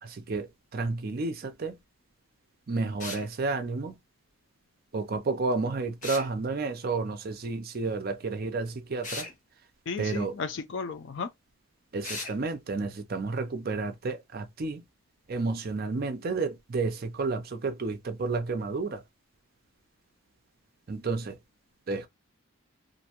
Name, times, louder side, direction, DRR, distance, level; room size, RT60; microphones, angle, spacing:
voice 1, 0.0-1.8 2.7-4.0 4.9-9.3 10.0-10.3 11.9-14.8 15.3-19.0 20.9-21.4 21.9-22.1, right 3 dB, 45° right, 0.4 m, -31 dB
sound 1, 3.0-3.3 6.0-6.3 9.0-9.3 12.0-12.4, left 3 dB, 35° left, 0.8 m, -36 dB
voice 2, 9.9-11.3, left 5 dB, 55° left, 0.4 m, -34 dB
2.5 x 2.2 x 2.8 m
head